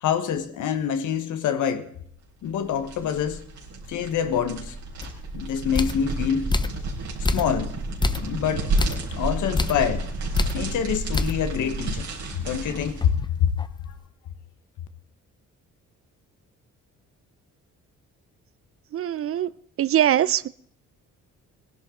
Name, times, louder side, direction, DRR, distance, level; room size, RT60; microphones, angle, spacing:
voice 1, 0.0-1.9 2.4-3.4 3.9-4.7 5.3-6.5 7.2-7.7 8.2-8.7 9.1-10.0 10.5-12.1 12.3-13.1 13.4-13.5 13.9-14.0, left 8 dB, 80° left, 1.3 m, -26 dB
sound 1, 2.5-13.1, right 2 dB, 65° right, 3.9 m, -31 dB
sound 2, 5.0-5.2 5.7-6.1 6.5-6.8 7.2-7.7 8.0-8.3 8.8-9.1 9.5-9.9 10.3-10.6 11.1-11.5 11.9-12.0 12.4-13.9, left 3 dB, 15° left, 0.6 m, -27 dB
voice 2, 18.9-19.5 19.8-20.5, right 11 dB, 50° right, 0.5 m, -22 dB
17.5 x 11.0 x 3.8 m
cardioid pair, 90°, 30 cm